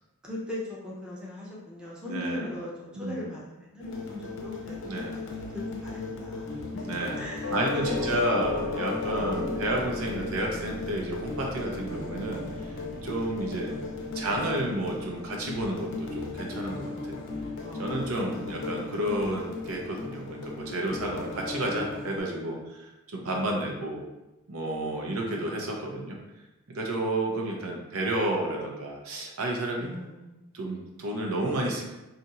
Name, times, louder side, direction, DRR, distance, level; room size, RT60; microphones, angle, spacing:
voice 1, 0.2-4.8 5.1-6.6 7.2-9.5 17.6-18.2 21.1-21.2 23.2-23.5 24.8-25.6 29.8-30.5, left 1 dB, 5° right, -6 dB, 0.6 m, -40 dB
voice 2, 2.1-2.5 2.9-3.3 4.8-5.1 6.8-7.2 7.5-13.8 14.1-17.2 17.8-24.0 24.5-26.2 26.7-29.9 30.5-31.8, right 1 dB, 75° right, 0 dB, 0.6 m, -31 dB
sound 1, 3.8-22.2, left 3 dB, 55° left, 0.5 m, -37 dB
Doorbell, 7.4-16.3, left 3 dB, 90° left, 0.8 m, -37 dB
2.8 x 2.5 x 4.1 m, 1.0 s
head